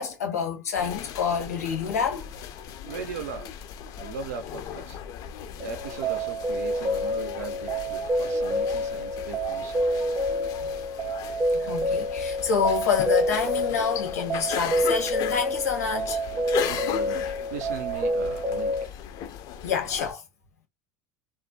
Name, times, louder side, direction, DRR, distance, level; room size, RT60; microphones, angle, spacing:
voice 1, 0.0-2.3 11.5-16.2 19.6-20.2, left 6 dB, 85° left, 0.8 m, -27 dB
sound 1, 0.8-20.1, left 9 dB, 50° left, 0.4 m, -37 dB
voice 2, 2.9-3.5 3.9-5.0 5.6-9.8 16.7-18.9, right 6 dB, 80° right, 0.5 m, -38 dB
sound 2, 5.6-18.8, equal, 25° right, 0.4 m, -28 dB
2.4 x 2.1 x 2.5 m
hypercardioid pair, 90°, 8 cm